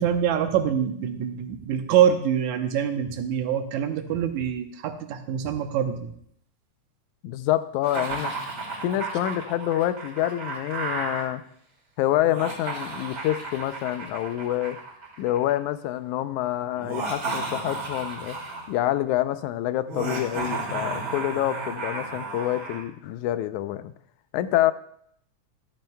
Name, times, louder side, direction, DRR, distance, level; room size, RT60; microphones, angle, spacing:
voice 1, 0.0-6.1, right 9 dB, 80° right, 7 dB, 2.2 m, -25 dB
voice 2, 7.2-8.3 8.8-11.4 12.0-14.8 15.2-18.4 18.7-23.9 24.3-24.7, left 13 dB, 90° left, 12 dB, 2.0 m, -27 dB
Laughter, 7.8-11.2 12.2-15.5 16.7-18.8 19.9-22.8, right 3 dB, 45° right, 3.5 m, -33 dB
13.5 x 13.0 x 2.2 m, 0.66 s
omnidirectional pair, 3.4 m